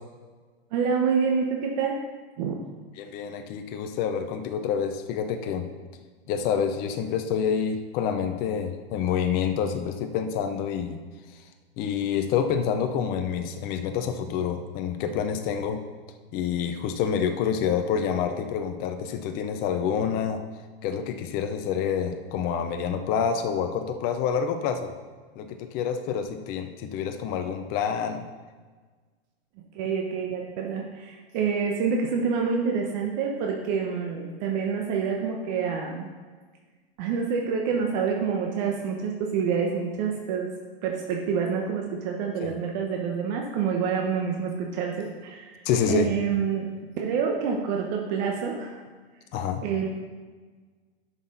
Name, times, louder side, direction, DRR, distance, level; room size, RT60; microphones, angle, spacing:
voice 1, 0.7-2.0 2.4-2.9 29.7-36.1 37.0-40.5 40.8-45.6 45.9-46.7 47.0-48.8 49.6-49.9, right 6 dB, 45° right, 1 dB, 1.2 m, -27 dB
voice 2, 3.0-5.7 6.3-11.0 11.8-15.8 16.3-20.4 20.8-24.9 25.4-28.2 42.4-42.5 45.7-46.1 49.3-49.6, left 7 dB, 30° left, 6 dB, 0.7 m, -27 dB
11.0 x 6.0 x 4.0 m, 1.4 s
hypercardioid pair, 130°, 31 cm